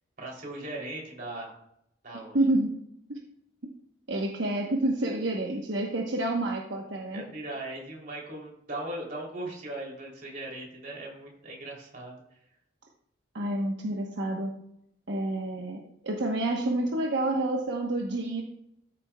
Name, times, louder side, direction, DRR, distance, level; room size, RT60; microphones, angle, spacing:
voice 1, 0.2-1.6 2.0-2.4 7.1-12.2, right 1 dB, 45° right, -2 dB, 3.1 m, -38 dB
voice 2, 2.3-2.7 3.1-3.2 4.1-7.2 13.3-14.5 15.1-18.4, right 1 dB, 75° right, 0 dB, 1.1 m, -28 dB
13.5 x 7.5 x 2.3 m, 0.75 s
head